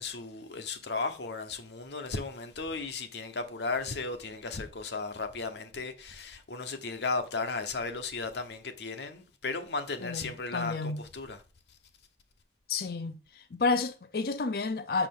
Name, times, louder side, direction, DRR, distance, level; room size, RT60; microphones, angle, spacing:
voice 1, 0.0-11.4, left 3 dB, 75° left, 0.9 m, -35 dB
voice 2, 10.0-11.0 12.7-15.1, left 4 dB, 55° left, 0.5 m, -31 dB
6.2 x 5.0 x 3.7 m
head